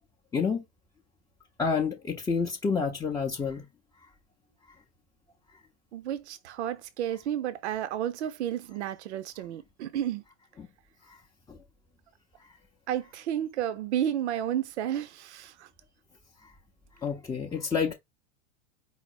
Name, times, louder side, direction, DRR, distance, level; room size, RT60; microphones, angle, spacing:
voice 1, 0.3-0.6 1.6-3.6 10.6-10.7 11.5-11.6 17.0-17.9, left 5 dB, 10° left, 0.5 m, -29 dB
voice 2, 5.9-10.2 12.9-15.7, right 10 dB, 80° right, 0.6 m, -32 dB
4.9 x 2.0 x 4.2 m
hypercardioid pair, 115°, 33 cm